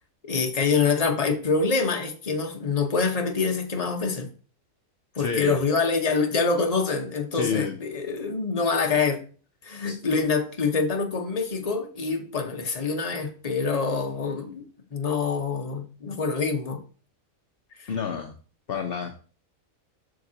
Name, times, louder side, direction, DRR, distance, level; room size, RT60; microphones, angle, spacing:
voice 1, 0.2-4.3 5.2-9.2 9.6-14.6 14.9-16.8, left 4 dB, 30° left, 1.0 m, -25 dB
voice 2, 5.2-5.6 7.3-7.8 9.8-9.9 17.9-18.3 18.7-19.2, left 6 dB, 50° left, 0.8 m, -29 dB
7.7 x 6.7 x 2.8 m
omnidirectional pair, 1.6 m